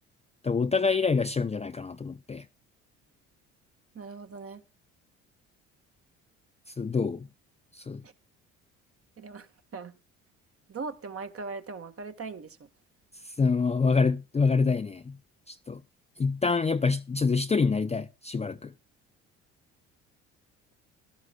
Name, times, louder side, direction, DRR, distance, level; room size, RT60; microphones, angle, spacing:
voice 1, 0.4-2.4 6.8-7.3 7.7-8.0 13.2-15.2 15.5-15.8 16.2-18.7, left 4 dB, 15° left, 0.6 m, -26 dB
voice 2, 3.9-4.6 8.0-8.1 9.2-9.5 9.7-9.9 10.7-12.7, right 4 dB, 35° right, 1.5 m, -39 dB
17.5 x 12.0 x 2.4 m
hypercardioid pair, 55°, 38 cm